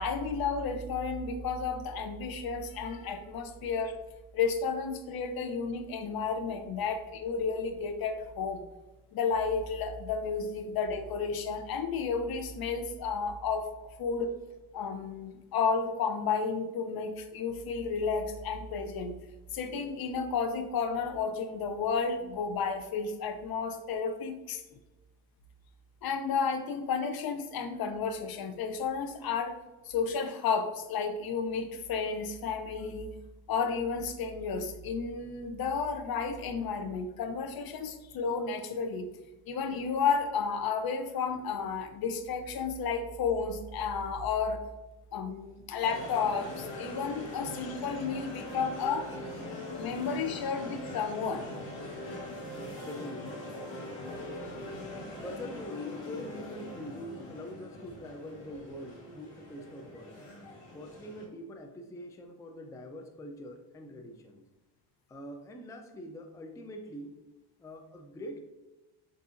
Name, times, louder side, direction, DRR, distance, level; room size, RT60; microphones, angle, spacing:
voice 1, 0.0-4.0 4.3-8.6 9.1-13.7 14.0-14.3 14.7-19.1 19.5-24.6 26.0-29.6 29.9-33.1 33.5-39.1 39.5-44.6 45.1-49.1 49.8-51.5, left 5 dB, 55° left, 8 dB, 0.6 m, -32 dB
sound 1, 45.8-61.3, left 1 dB, 80° left, 1.3 m, -42 dB
voice 2, 52.3-53.5 55.2-60.3 60.7-64.4 65.1-67.2 67.6-68.4, equal, 10° left, 3 dB, 0.4 m, -44 dB
6.6 x 2.7 x 2.5 m, 1.1 s
supercardioid pair, 85°, 45 cm